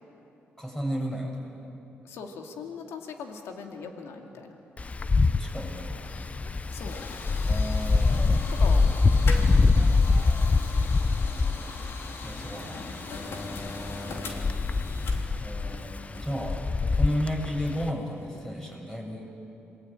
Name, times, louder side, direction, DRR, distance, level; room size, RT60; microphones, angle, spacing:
voice 1, 0.6-1.7 5.2-6.5 7.4-8.5 9.7-10.6 12.2-12.9 15.4-19.3, equal, 10° left, 0 dB, 7.7 m, -34 dB
voice 2, 2.0-4.6 6.7-7.1 8.6-9.1 11.2-11.8 12.1-12.2 13.4-13.7 14.0-14.6, left 5 dB, 85° left, 3 dB, 2.4 m, -41 dB
Wind, 4.8-17.9, left 3 dB, 30° left, 0.7 m, -25 dB
sound 1, 6.0-18.8, left 3 dB, 65° left, 3.3 m, -41 dB
28.0 x 22.0 x 9.0 m, 2.9 s
cardioid pair, 75°, 4 cm